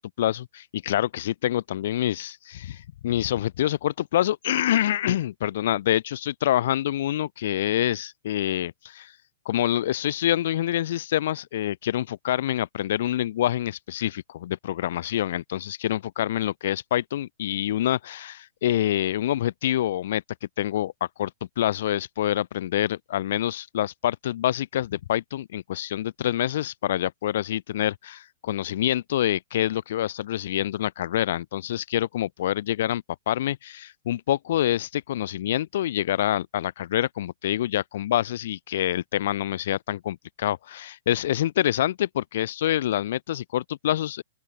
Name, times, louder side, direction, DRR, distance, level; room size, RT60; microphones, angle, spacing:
voice 1, 0.0-9.1 9.5-20.2 20.6-20.9 21.2-21.3 21.6-44.2, left 12 dB, 50° left, 2.1 m, -26 dB
open air
hypercardioid pair, 170°, 0 cm